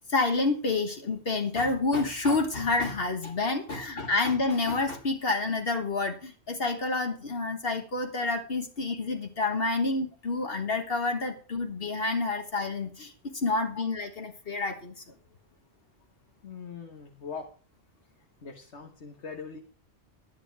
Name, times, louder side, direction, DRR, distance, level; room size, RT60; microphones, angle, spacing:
voice 1, 0.1-14.9, left 3 dB, 60° left, 4 dB, 1.6 m, -28 dB
voice 2, 3.7-4.1 8.5-8.6 13.7-13.9 16.4-17.5 18.4-19.6, left 5 dB, 80° left, 2 dB, 1.7 m, -42 dB
11.5 x 10.5 x 4.7 m, 0.40 s
omnidirectional pair, 1.1 m